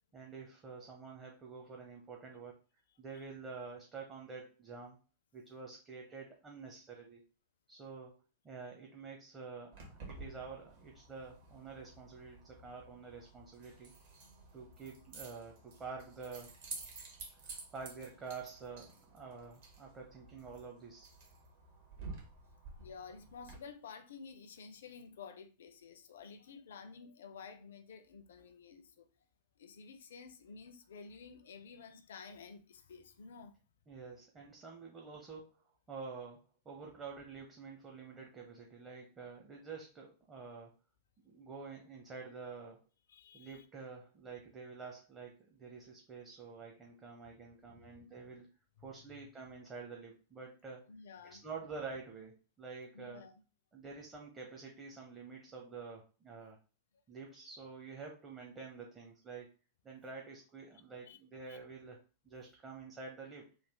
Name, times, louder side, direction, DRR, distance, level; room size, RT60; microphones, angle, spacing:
voice 1, 0.1-2.5 3.0-5.0 5.3-7.2 7.7-8.1 8.4-13.9 14.5-16.5 17.4-21.1 33.9-35.5 35.9-40.7 41.2-42.8 43.3-48.5 48.8-50.8 51.4-53.2 53.7-56.6 57.1-59.5 59.8-62.0 62.2-63.5, right 4 dB, 20° right, 0.7 m, -48 dB
Keys jangling, 9.7-23.5, right 3 dB, 55° right, 1.2 m, -52 dB
voice 2, 14.2-14.6 19.9-20.0 22.5-29.1 29.6-33.5 43.1-43.6 47.8-47.9 48.8-48.9 50.9-51.4 52.9-53.3 61.1-61.2 61.5-61.6, left 5 dB, 60° left, 0.4 m, -52 dB
3.2 x 2.3 x 3.5 m
figure-of-eight pair, 90°, 0 cm